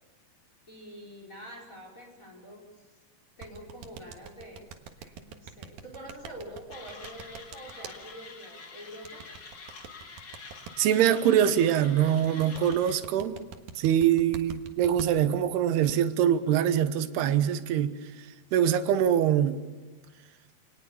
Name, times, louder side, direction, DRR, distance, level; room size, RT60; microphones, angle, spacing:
voice 1, 0.7-2.8 3.4-4.6 5.0-9.2, equal, 20° left, 4.8 m, -46 dB
sound 1, 3.4-7.9 9.0-10.7 12.2-15.1, right 7 dB, 70° right, 3.1 m, -43 dB
Mechanisms, 6.7-13.0, left 4 dB, 40° left, 1.8 m, -47 dB
voice 2, 10.8-13.4 13.8-17.9 18.5-19.6, right 10 dB, 85° right, 3.2 m, -24 dB
28.0 x 19.5 x 7.1 m
omnidirectional pair, 4.5 m